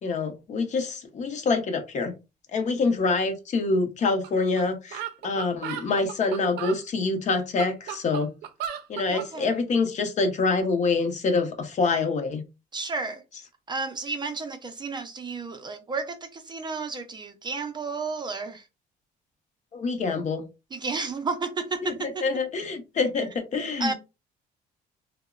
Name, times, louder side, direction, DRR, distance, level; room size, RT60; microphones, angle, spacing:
voice 1, 0.0-2.1 2.5-8.3 8.9-12.4 19.7-20.4 21.8-21.9 22.2-23.9, left 3 dB, 45° left, 0.7 m, -26 dB
sound 1, 4.2-4.3 4.6-4.7 4.9-6.8 7.3-9.3, right 9 dB, 80° right, 0.4 m, -35 dB
voice 2, 9.1-9.5 12.7-13.2 13.7-18.7 20.7-22.3 23.8-23.9, right 4 dB, 25° right, 0.4 m, -32 dB
2.8 x 2.0 x 2.3 m
cardioid pair, 110°, 17 cm